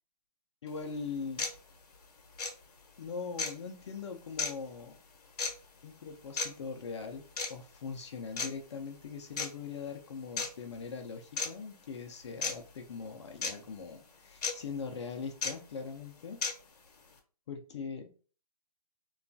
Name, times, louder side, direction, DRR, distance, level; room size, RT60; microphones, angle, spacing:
voice 1, 0.6-1.5 3.0-5.0 5.8-16.4 17.5-18.1, left 5 dB, 45° left, 4 dB, 0.4 m, -41 dB
sound 1, 0.7-0.8 1.4-1.5 2.4-2.5 3.4-3.5 4.4-4.5 5.4-5.5 6.4-6.5 7.4-7.5 8.4-8.5 9.4-9.5 10.4-10.5 11.4-11.5 12.4-12.5 13.4-13.5 14.4-14.5 15.4-15.5 16.4-16.5, left 4 dB, 65° left, 0.8 m, -32 dB
2.9 x 2.3 x 2.5 m, 0.38 s
hypercardioid pair, 155°, 21 cm